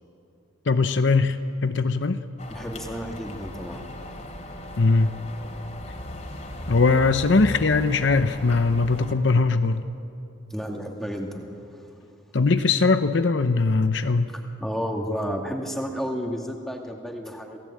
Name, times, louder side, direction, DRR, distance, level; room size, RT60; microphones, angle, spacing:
voice 1, 0.7-2.2 4.8-5.1 6.7-9.8 12.3-14.3, left 3 dB, 60° left, 9 dB, 0.8 m, -20 dB
sound 1, 2.4-9.1, left 1 dB, 35° left, 2.9 m, -38 dB
voice 2, 2.5-3.8 10.5-11.9 14.6-17.6, equal, ahead, 1 dB, 2.3 m, -31 dB
28.5 x 18.0 x 8.8 m, 2.8 s
head